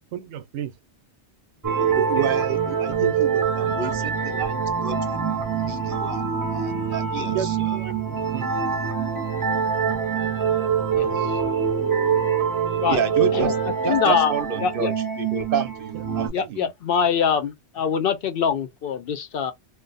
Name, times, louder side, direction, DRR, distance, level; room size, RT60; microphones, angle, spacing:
voice 1, 0.1-0.7 3.5-4.1 7.3-8.5 13.4-13.5 16.2-16.6, right 9 dB, 90° right, 0.9 m, -34 dB
sound 1, 1.6-16.3, right 6 dB, 25° right, 0.5 m, -24 dB
voice 2, 1.9-7.8 12.9-13.6 13.8-16.7, right 6 dB, 60° right, 0.8 m, -30 dB
voice 3, 10.9-11.3 12.8-13.0 13.3-13.5 13.8-14.3 14.6-14.9 16.3-19.5, left 7 dB, 65° left, 0.7 m, -24 dB
2.5 x 2.2 x 3.8 m
omnidirectional pair, 1.2 m